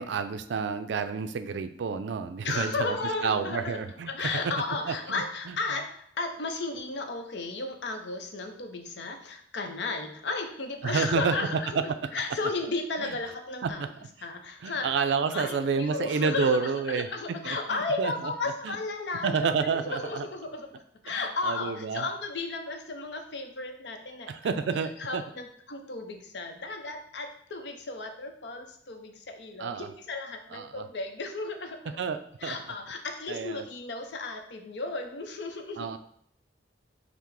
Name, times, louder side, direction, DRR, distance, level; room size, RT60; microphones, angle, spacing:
voice 1, 0.0-3.0 3.2-4.3 4.9-5.5 10.8-11.3 11.7-11.8 13.0-13.2 13.6-13.9 14.6-17.1 17.4-18.3 18.6-18.8 19.2-20.3 21.1-21.2 21.4-22.1 24.3-25.2 29.6-29.9 30.5-30.8 32.0-32.7 33.3-33.6 35.8-36.0, right 5 dB, 75° right, 9 dB, 0.3 m, -29 dB
voice 2, 2.4-3.8 4.1-11.8 12.1-13.9 14.2-15.0 15.3-20.7 21.0-24.5 25.0-32.0 32.4-35.9, left 3 dB, 70° left, 5 dB, 0.6 m, -34 dB
5.6 x 2.0 x 4.7 m, 0.65 s
head